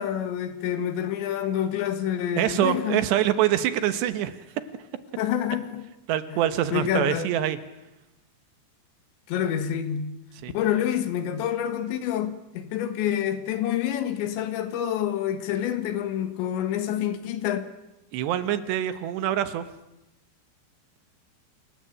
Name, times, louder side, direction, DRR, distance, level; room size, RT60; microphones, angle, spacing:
voice 1, 0.0-3.0 5.2-5.9 6.3-6.4 6.7-7.3 9.3-10.2 10.5-17.7, left 10 dB, 75° left, 3.6 m, -27 dB
voice 2, 2.4-4.4 6.1-7.6 10.4-10.5 18.1-19.7, right 12 dB, 75° right, 3.0 m, -25 dB
27.0 x 19.5 x 8.6 m
omnidirectional pair, 5.4 m